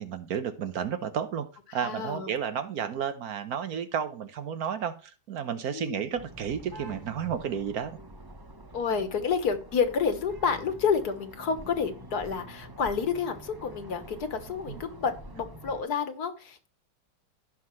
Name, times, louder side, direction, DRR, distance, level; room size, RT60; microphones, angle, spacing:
voice 1, 0.0-8.0 14.7-14.8, right 8 dB, 65° right, 11 dB, 1.3 m, -32 dB
voice 2, 1.7-2.3 5.7-6.1 8.7-16.7, left 6 dB, 65° left, 9 dB, 1.8 m, -29 dB
sound 1, 6.2-15.8, right 1 dB, 15° right, 0.8 m, -46 dB
16.0 x 5.9 x 3.2 m, 0.35 s
omnidirectional pair, 1.8 m